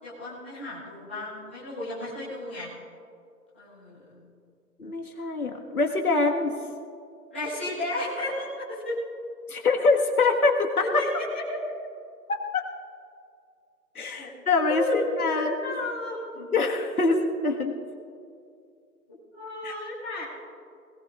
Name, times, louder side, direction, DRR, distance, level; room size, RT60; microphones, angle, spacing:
voice 1, 0.0-2.7 3.5-4.2 7.3-9.0 11.0-11.1 11.3-11.6 14.2-14.3 14.7-15.0 15.3-16.5 19.3-20.2, left 1 dB, 5° left, -12 dB, 0.9 m, -33 dB
voice 2, 4.8-6.5 9.5-10.7 10.9-11.0 12.3-12.6 13.9-15.6 16.5-17.7 19.6-19.7, left 3 dB, 65° left, 2 dB, 1.7 m, -24 dB
20.5 x 17.5 x 2.4 m, 2.4 s
hypercardioid pair, 170°, 48 cm